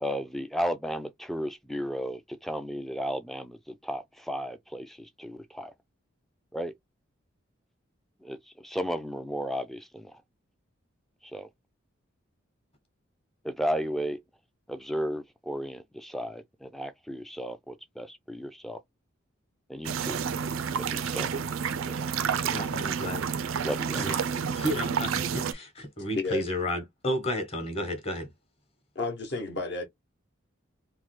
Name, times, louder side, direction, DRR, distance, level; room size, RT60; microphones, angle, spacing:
voice 1, 0.0-5.7 6.5-6.7 8.2-10.1 11.3-11.5 13.4-14.2 14.7-18.8 19.7-20.2 20.8-21.5 21.8-22.0 23.6-24.1, equal, ahead, 0.3 m, -34 dB
sound 1, 19.8-25.5, right 6 dB, 85° right, 0.4 m, -30 dB
voice 2, 22.5-23.3 24.0-28.3, left 1 dB, 30° left, 1.0 m, -32 dB
voice 3, 26.1-26.4 28.9-29.9, left 3 dB, 55° left, 0.9 m, -31 dB
3.1 x 2.1 x 3.1 m
head